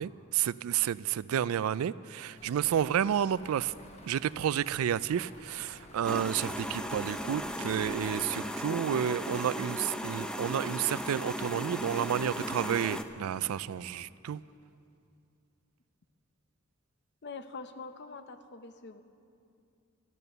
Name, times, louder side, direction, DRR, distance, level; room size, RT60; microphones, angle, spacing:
voice 1, 0.0-3.7 4.1-14.4, right 9 dB, 85° right, 19 dB, 0.3 m, -31 dB
sound 1, 2.4-8.4, left 2 dB, 30° left, 1.2 m, -53 dB
sound 2, 6.0-13.0, equal, 5° left, 0.5 m, -36 dB
voice 2, 17.2-19.0, left 4 dB, 55° left, 9 dB, 0.7 m, -44 dB
12.5 x 12.5 x 6.7 m, 2.5 s
head